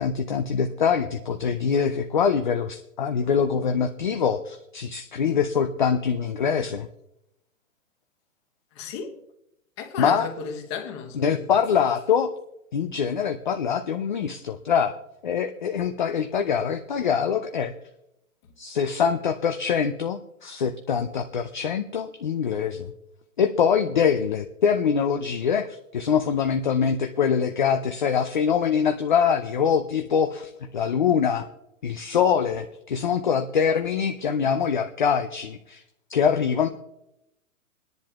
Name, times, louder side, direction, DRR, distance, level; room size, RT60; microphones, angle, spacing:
voice 1, 0.0-6.9 10.0-10.3 11.1-12.3 12.7-15.0 15.2-17.7 18.6-22.9 23.4-31.5 31.8-35.8 36.1-36.7, left 7 dB, 35° left, 0.4 m, -24 dB
voice 2, 8.8-9.2 9.8-11.4, left 6 dB, 20° left, 0.9 m, -34 dB
27.0 x 10.5 x 2.4 m
hypercardioid pair, 160°, 42 cm